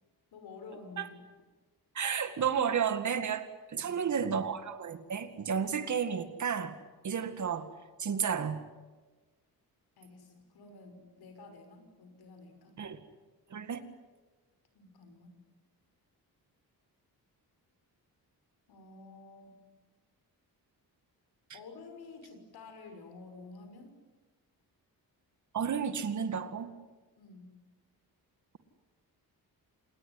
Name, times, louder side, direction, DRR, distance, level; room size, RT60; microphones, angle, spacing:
voice 1, 0.3-1.2 3.7-4.1 10.0-12.8 14.7-15.4 18.7-19.6 21.5-24.0 27.2-27.5, left 3 dB, 75° left, 7 dB, 5.9 m, -51 dB
voice 2, 1.9-6.7 7.0-7.7 8.0-8.6 12.8-13.0 13.5-13.8 25.5-26.7, right 7 dB, 50° right, 10 dB, 2.1 m, -32 dB
27.5 x 20.5 x 9.8 m, 1.3 s
wide cardioid pair, 145°, 38 cm